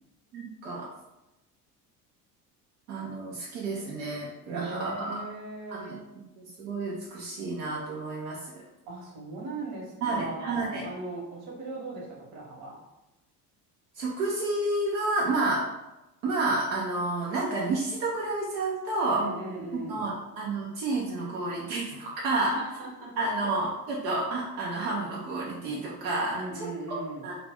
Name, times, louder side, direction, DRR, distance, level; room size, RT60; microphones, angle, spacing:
voice 1, 0.3-0.9 2.9-5.2 5.7-6.0 6.4-8.4 10.0-10.8 14.0-15.6 16.2-19.3 19.7-22.6 23.2-27.0 27.2-27.4, right 2 dB, 85° right, -4 dB, 0.6 m, -30 dB
voice 2, 4.5-5.9 8.9-12.8 19.1-20.1 22.4-23.1 23.4-23.5 26.3-27.3, right 2 dB, 60° right, -2 dB, 1.1 m, -38 dB
2.4 x 2.1 x 3.4 m, 0.97 s
hypercardioid pair, 70°, 49 cm